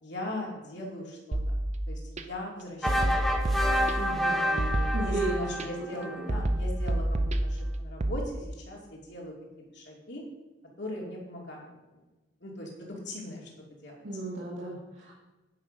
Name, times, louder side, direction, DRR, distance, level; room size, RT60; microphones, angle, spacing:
voice 1, 0.0-2.0 2.3-3.6 4.3-9.3 9.7-10.2 10.8-11.6 12.4-13.5 13.8-14.0, left 1 dB, 65° left, -2 dB, 2.7 m, -40 dB
sound 1, 1.3-2.2 2.9-4.2 4.6-5.7 6.3-8.2, right 1 dB, 40° right, 0.6 m, -29 dB
sound 2, 2.8-6.3, equal, ahead, 0.8 m, -29 dB
voice 2, 4.0-4.4 4.9-5.8 6.2-6.5 14.0-15.1, right 2 dB, 85° right, -7 dB, 2.1 m, -34 dB
9.6 x 6.1 x 5.1 m, 1.1 s
head